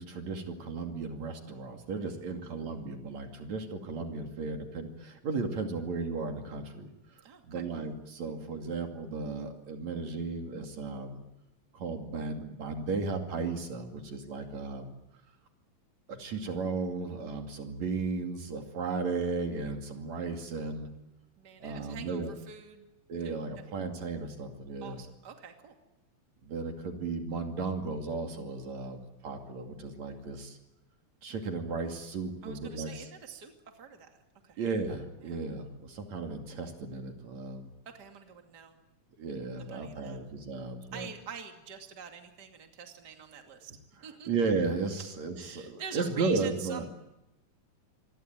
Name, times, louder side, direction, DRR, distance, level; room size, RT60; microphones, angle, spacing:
voice 1, 0.0-6.9 7.4-11.2 11.7-14.9 16.1-20.9 21.6-22.3 23.1-25.0 26.4-30.6 31.2-33.1 34.6-37.7 39.2-41.1 44.3-46.9, right 4 dB, 65° right, 4 dB, 3.7 m, -35 dB
voice 2, 7.2-7.7 21.4-22.9 24.8-25.7 32.4-34.2 34.4-34.6 35.2-35.4 37.9-38.8 39.6-40.2 40.9-43.7 44.0-44.3 45.0-45.1 45.4-46.9, right 7 dB, 35° right, 4 dB, 2.8 m, -46 dB
27.0 x 22.5 x 9.0 m, 0.92 s
omnidirectional pair, 3.4 m